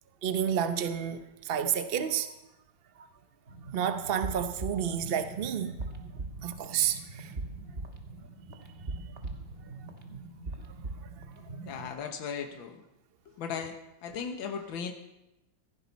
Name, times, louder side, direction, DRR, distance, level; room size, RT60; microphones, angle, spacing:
voice 1, 0.2-2.3 3.7-5.8 6.4-7.3 10.1-10.2, right 8 dB, 70° right, 9 dB, 0.5 m, -30 dB
sound 1, 3.5-11.9, right 3 dB, 35° right, 1.4 m, -41 dB
voice 2, 11.5-12.8 13.3-13.8 14.0-14.9, left 6 dB, 80° left, 5 dB, 1.9 m, -37 dB
15.5 x 15.5 x 4.1 m, 0.93 s
omnidirectional pair, 2.1 m